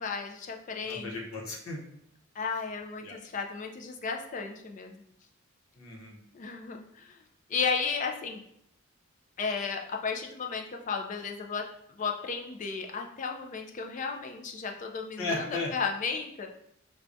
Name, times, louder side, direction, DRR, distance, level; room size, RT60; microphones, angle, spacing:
voice 1, 0.0-1.2 2.4-4.9 6.3-7.2 7.5-8.4 9.4-11.6 12.0-16.6, left 5 dB, 35° left, 2 dB, 0.3 m, -34 dB
voice 2, 0.9-1.8 3.0-3.1 5.8-6.2 15.2-15.7, left 3 dB, 80° left, -1 dB, 0.8 m, -35 dB
4.6 x 2.2 x 2.5 m, 0.73 s
head